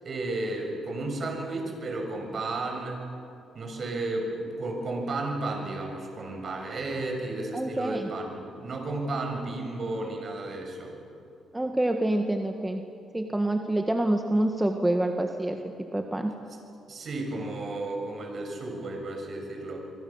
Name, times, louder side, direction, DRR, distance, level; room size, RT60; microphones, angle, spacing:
voice 1, 0.0-3.0 3.5-11.0 16.9-19.8, right 2 dB, 50° right, 2 dB, 6.9 m, -33 dB
voice 2, 7.5-8.1 11.5-12.8 13.1-16.3, right 1 dB, 10° right, 4 dB, 1.6 m, -27 dB
25.5 x 24.5 x 7.3 m, 2.6 s
cardioid pair, 90°, 0 cm